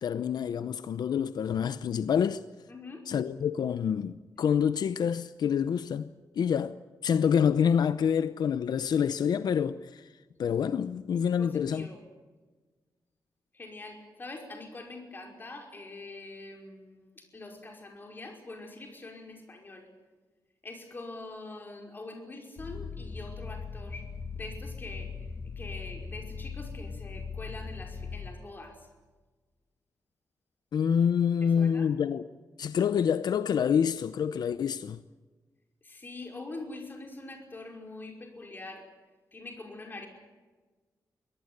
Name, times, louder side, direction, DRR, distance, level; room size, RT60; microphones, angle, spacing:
voice 1, 0.0-2.4 3.1-6.1 6.3-10.1 10.4-11.9 30.7-32.2 32.6-35.0, left 7 dB, 75° left, 0.7 m, -27 dB
voice 2, 2.7-3.1 11.4-12.0 13.5-19.9 20.6-24.1 24.3-28.9 31.4-31.9 35.8-38.9 39.3-40.1, left 2 dB, 30° left, 5.4 m, -44 dB
sound 1, 22.6-28.3, left 5 dB, 45° left, 2.8 m, -39 dB
24.0 x 18.5 x 9.7 m
wide cardioid pair, 160°, 7 cm